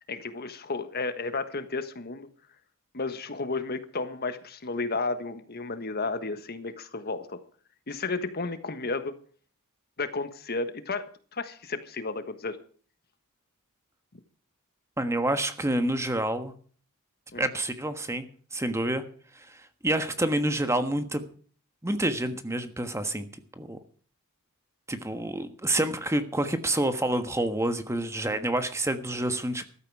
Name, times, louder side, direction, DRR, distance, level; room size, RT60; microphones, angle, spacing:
voice 1, 0.1-2.3 2.9-7.4 7.9-9.1 10.0-12.6 17.3-17.5, left 3 dB, 45° left, 11 dB, 1.5 m, -33 dB
voice 2, 15.0-16.5 17.4-18.3 18.5-19.0 19.3-21.2 21.8-23.3 23.6-23.8 24.9-29.6, right 1 dB, 15° right, 9 dB, 1.4 m, -28 dB
14.5 x 13.0 x 4.8 m, 0.43 s
head